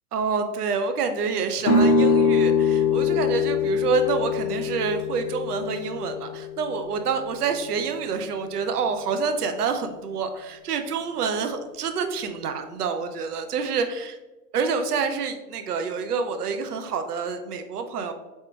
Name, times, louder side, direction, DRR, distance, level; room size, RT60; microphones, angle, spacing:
voice 1, 0.1-14.1 14.5-18.1, right 5 dB, 75° right, 7 dB, 0.6 m, -27 dB
sound 1, 1.6-7.4, left 5 dB, 25° left, 0.5 m, -23 dB
4.5 x 2.9 x 3.3 m, 1.1 s
figure-of-eight pair, 105°, 47 cm